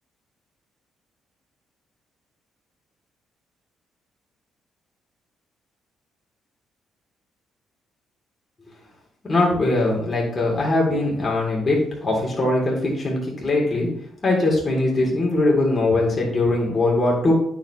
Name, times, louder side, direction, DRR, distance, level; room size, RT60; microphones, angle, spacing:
voice 1, 9.2-13.9 14.2-17.3, left 2 dB, 35° left, -2 dB, 3.5 m, -21 dB
9.2 x 5.1 x 3.4 m, 0.66 s
cardioid pair, 90°, 0 cm